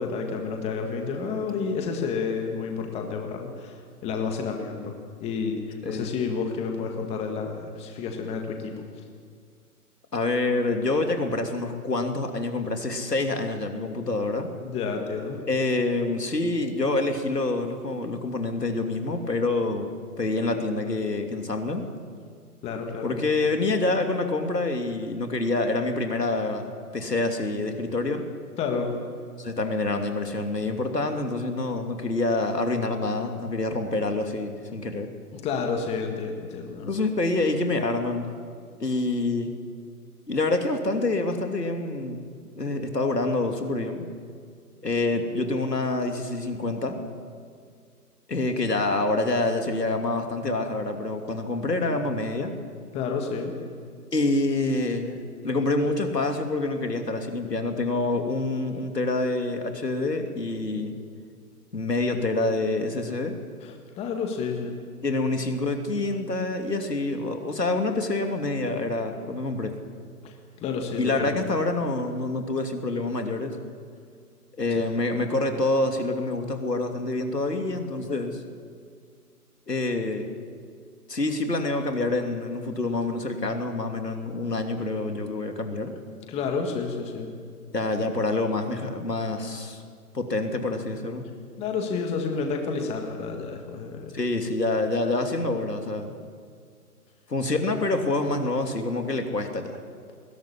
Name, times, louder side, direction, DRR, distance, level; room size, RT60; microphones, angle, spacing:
voice 1, 0.0-5.0 5.2-8.7 14.6-15.4 22.6-23.2 28.6-28.9 35.3-36.9 52.9-53.5 63.6-64.8 70.2-70.3 70.6-71.5 74.8-74.9 86.1-87.3 91.6-94.2, left 5 dB, 15° left, 3 dB, 1.8 m, -30 dB
voice 2, 10.1-14.5 15.5-19.9 20.2-21.9 23.0-28.3 29.4-35.1 36.8-38.3 38.8-39.5 40.3-42.2 42.6-44.1 44.8-47.0 48.3-52.5 54.1-61.0 61.7-63.3 65.0-69.7 71.0-73.6 74.6-78.4 79.7-80.3 81.1-85.9 87.7-89.8 90.1-91.3 94.1-96.1 97.3-99.8, left 2 dB, 90° left, 4 dB, 3.0 m, -27 dB
20.5 x 16.5 x 10.0 m, 2.1 s
figure-of-eight pair, 140°, 47 cm